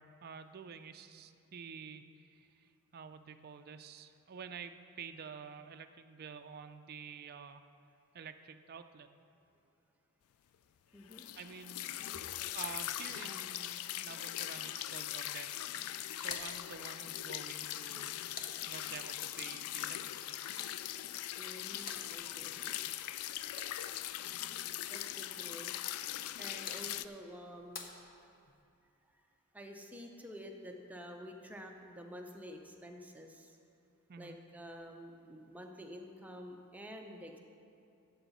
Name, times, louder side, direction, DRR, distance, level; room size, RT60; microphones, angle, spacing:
voice 1, 0.0-7.6 8.1-9.1 11.4-12.1 12.5-15.7 16.1-18.2 18.7-20.8 34.1-34.4, right 6 dB, 45° right, 8 dB, 0.4 m, -49 dB
voice 2, 10.9-11.2 21.4-22.9 24.9-25.8 26.4-27.9 29.1-29.2 29.5-33.6 34.2-37.4, equal, 5° right, 2 dB, 0.7 m, -49 dB
sound 1, 11.1-27.1, left 13 dB, 70° left, 0.3 m, -41 dB
sound 2, 16.2-19.3 21.2-24.2 26.2-28.6, left 5 dB, 40° left, 0.8 m, -52 dB
13.5 x 8.0 x 4.1 m, 2.5 s
head